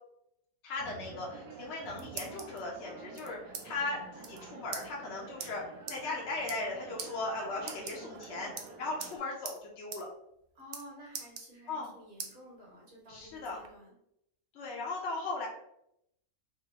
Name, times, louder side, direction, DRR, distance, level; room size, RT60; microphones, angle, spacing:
voice 1, 0.6-5.6 5.9-8.5 8.8-10.1 11.7-11.9 13.1-13.6 14.5-15.5, left 3 dB, 60° left, -2 dB, 0.8 m, -37 dB
sound 1, 0.8-9.2, right 4 dB, 75° right, 1.1 m, -49 dB
sound 2, 1.6-2.6 3.1-3.6 3.9-4.0 4.2-4.4 4.7-4.8 5.4-5.5 5.9-6.0 6.4-6.7 7.0-7.1 7.6-8.2 8.6-9.1 9.4-9.6 9.9-10.0 10.3-10.8 11.1-11.9 12.2-12.3 12.8-13.7, right 6 dB, 90° right, 0.5 m, -42 dB
voice 2, 10.5-13.9, equal, 45° right, -4 dB, 1.5 m, -52 dB
3.7 x 2.4 x 2.8 m, 0.78 s
omnidirectional pair, 1.6 m